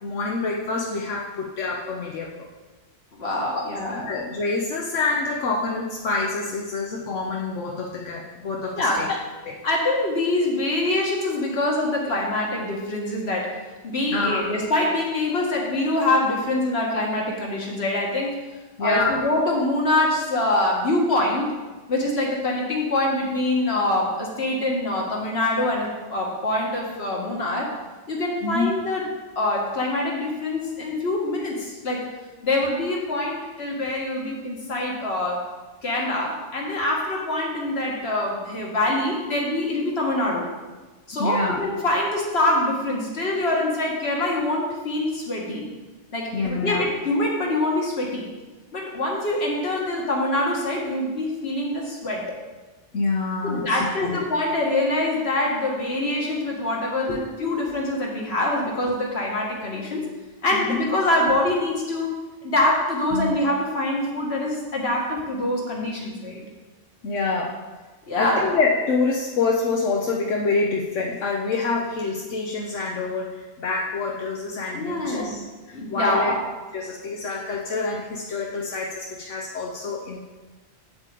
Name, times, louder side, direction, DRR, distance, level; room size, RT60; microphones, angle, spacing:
voice 1, 0.0-2.5 3.9-9.1 9.4-9.6 14.1-14.4 18.8-19.2 28.4-28.7 41.2-41.6 46.3-46.9 52.9-54.2 57.1-57.3 60.5-60.8 63.1-63.3 67.0-67.5 68.2-75.4 75.7-76.3 76.7-80.2, left 3 dB, 85° left, -1 dB, 1.2 m, -26 dB
voice 2, 3.1-4.0 8.8-9.1 9.6-13.6 13.8-18.4 18.8-21.5 21.9-27.7 28.1-29.1 29.4-32.0 32.4-35.5 35.8-40.5 41.1-45.6 46.1-48.3 48.7-52.3 53.4-60.1 60.4-66.4 68.1-68.4 74.7-75.3 75.7-76.4, left 1 dB, 60° left, -2 dB, 1.9 m, -24 dB
8.2 x 7.7 x 3.8 m, 1.2 s
omnidirectional pair, 1.2 m